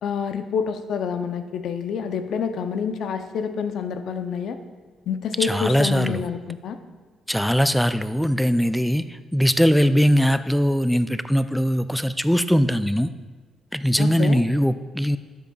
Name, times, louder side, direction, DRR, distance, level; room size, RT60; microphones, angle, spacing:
voice 1, 0.0-4.6 5.1-6.8 14.0-14.4, left 6 dB, 70° left, 9 dB, 0.6 m, -27 dB
voice 2, 5.4-6.3 7.3-13.1 13.7-15.2, equal, ahead, 12 dB, 0.4 m, -21 dB
12.0 x 7.5 x 2.3 m, 1.4 s
cardioid pair, 90°, 0 cm